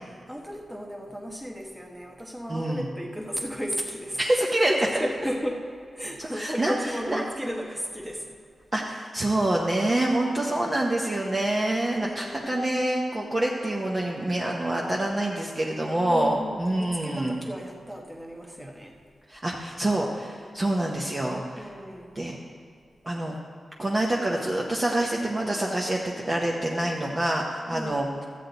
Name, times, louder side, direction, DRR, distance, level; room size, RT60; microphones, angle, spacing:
voice 1, 0.0-4.2 4.9-5.7 6.0-8.3 11.9-12.5 16.1-19.0 21.5-22.1 27.7-28.0, equal, 5° right, 1 dB, 1.1 m, -34 dB
voice 2, 2.5-2.9 4.2-5.0 6.3-6.7 7.1-7.2 8.7-17.4 19.3-21.7 22.2-22.4 23.0-23.3 23.8-28.1, right 1 dB, 25° right, -2 dB, 0.8 m, -26 dB
13.5 x 8.1 x 3.9 m, 2.3 s
wide cardioid pair, 150°, 0 cm